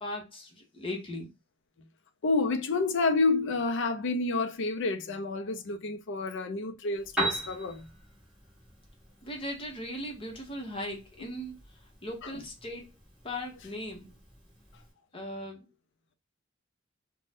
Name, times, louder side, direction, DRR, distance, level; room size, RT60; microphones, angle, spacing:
voice 1, 0.0-1.3 9.2-11.5 12.0-12.8 13.2-14.1 15.1-15.6, left 1 dB, 25° left, 0.8 m, -38 dB
voice 2, 2.2-7.9 11.2-11.3 12.2-12.3, left 3 dB, 65° left, 0.4 m, -29 dB
Piano, 6.9-14.9, right 1 dB, ahead, 1.2 m, -40 dB
2.5 x 2.1 x 3.3 m
head